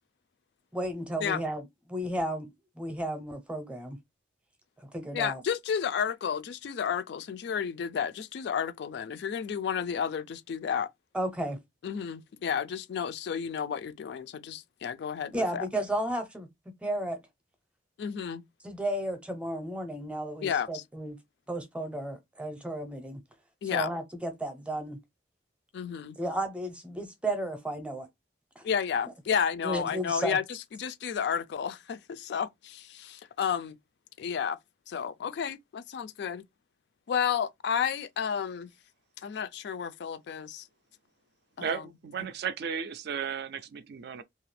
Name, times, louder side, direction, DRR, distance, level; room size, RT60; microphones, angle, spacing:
voice 1, 0.7-1.6 1.9-4.0 4.9-5.4 11.1-11.6 15.3-16.5 16.8-17.2 18.6-21.2 21.5-23.2 23.7-25.0 26.2-28.1 28.6-28.7 29.6-30.4, right 1 dB, 5° right, 0.6 m, -33 dB
voice 2, 5.1-10.9 11.8-15.7 18.0-18.4 20.4-20.8 23.6-23.9 25.7-26.2 28.6-33.7 34.2-34.6 34.9-36.4 37.1-38.7 39.2-40.7 41.6-41.8, left 7 dB, 65° left, 0.3 m, -32 dB
voice 3, 41.6-44.2, right 7 dB, 60° right, 0.3 m, -34 dB
2.7 x 2.4 x 3.2 m
head